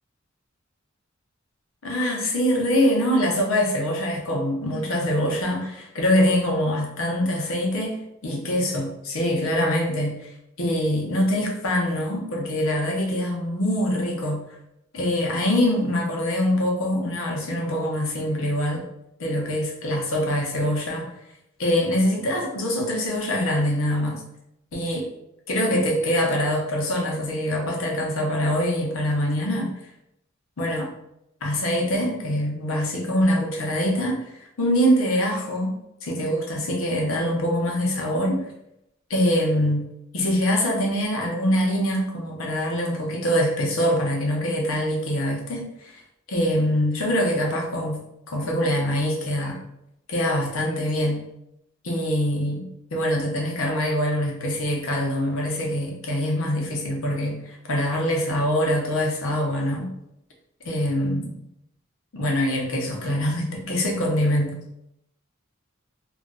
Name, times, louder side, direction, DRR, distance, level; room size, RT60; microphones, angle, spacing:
voice 1, 1.8-8.0 8.2-10.3 10.6-14.4 14.9-18.8 19.2-21.1 21.6-24.2 24.7-25.1 25.5-29.7 30.6-30.9 31.4-34.2 34.6-35.7 36.0-38.5 39.1-39.9 40.1-46.0 46.3-48.0 48.3-49.6 50.1-51.2 51.8-52.7 52.9-59.9 60.6-61.4 62.1-64.6, equal, 85° left, 0 dB, 0.8 m, -24 dB
2.4 x 2.2 x 3.8 m, 0.82 s
head